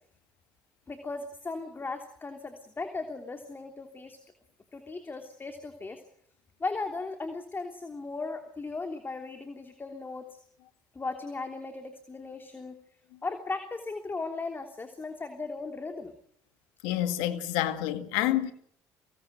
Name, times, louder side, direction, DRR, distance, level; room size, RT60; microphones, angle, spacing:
voice 1, 0.9-4.2 4.7-6.0 6.6-10.4 10.9-12.8 13.2-16.1, left 3 dB, 25° left, 3.2 m, -37 dB
voice 2, 16.8-18.5, left 13 dB, 80° left, 2.1 m, -28 dB
25.0 x 19.0 x 8.0 m
hypercardioid pair, 65°, 8 cm